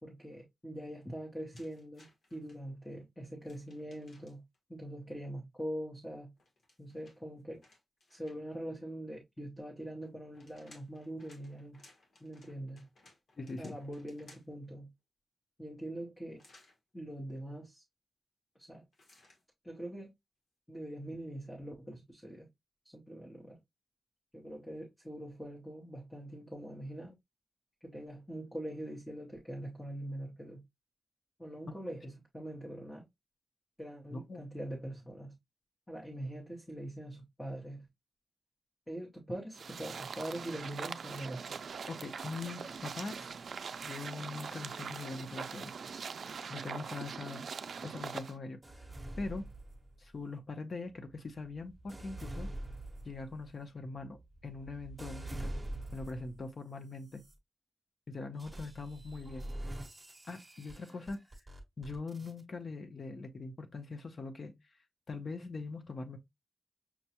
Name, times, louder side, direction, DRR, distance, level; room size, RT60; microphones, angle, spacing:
voice 1, 0.0-2.1 2.3-4.4 4.7-6.3 6.8-7.6 8.1-11.8 12.2-12.9 13.6-14.9 15.6-16.4 16.9-17.8 18.5-18.8 19.6-20.1 20.7-22.5 22.8-23.6 24.3-27.1 27.8-30.6 31.4-33.1 33.8-35.3 35.9-37.9 38.9-41.5, right 1 dB, 10° left, 0.8 m, -43 dB
sound 1, 1.5-2.6 3.4-4.6 6.4-8.6 10.0-14.7 16.4-16.8 18.9-19.4, left 2 dB, 75° left, 1.2 m, -62 dB
voice 2, 13.4-13.8 31.7-31.8 34.1-34.4 41.8-43.3 43.8-45.7 46.5-47.4 47.8-48.9 49.2-49.5 50.0-52.5 53.0-55.5 55.9-57.2 58.1-59.5 60.3-61.2 61.8-64.5 65.1-66.2, left 3 dB, 50° left, 0.7 m, -42 dB
sound 2, 39.5-48.3, right 6 dB, 80° right, 0.3 m, -42 dB
sound 3, 48.6-50.2 50.9-56.4 57.0-57.3 58.4-62.4, right 1 dB, 20° right, 1.0 m, -45 dB
5.8 x 2.2 x 2.8 m
wide cardioid pair, 135°, 0 cm